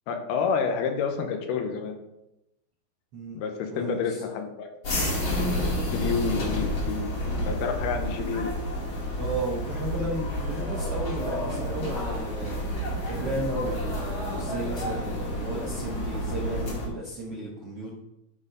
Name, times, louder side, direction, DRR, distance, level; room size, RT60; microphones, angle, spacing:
voice 1, 0.1-2.0 3.3-4.7 5.9-7.1 7.4-8.5, left 6 dB, 85° left, 5 dB, 2.9 m, -29 dB
voice 2, 3.7-4.2 9.2-17.9, right 1 dB, 65° right, -3 dB, 1.4 m, -34 dB
sound 1, 4.8-16.9, equal, 40° left, 2.3 m, -30 dB
11.0 x 4.4 x 5.1 m, 0.89 s
omnidirectional pair, 4.4 m